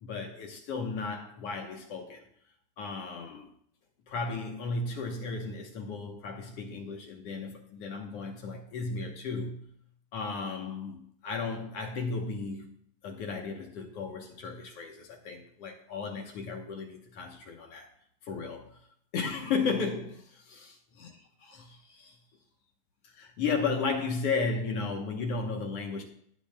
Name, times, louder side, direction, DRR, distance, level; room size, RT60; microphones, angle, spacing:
voice 1, 0.0-2.3 2.8-3.5 4.1-9.7 10.1-12.7 13.0-17.9 18.2-18.8 19.1-20.7 21.0-21.1 21.4-22.2 23.0-26.0, left 4 dB, 65° left, 1.8 m, -34 dB
17.5 x 6.8 x 2.2 m
omnidirectional pair, 3.3 m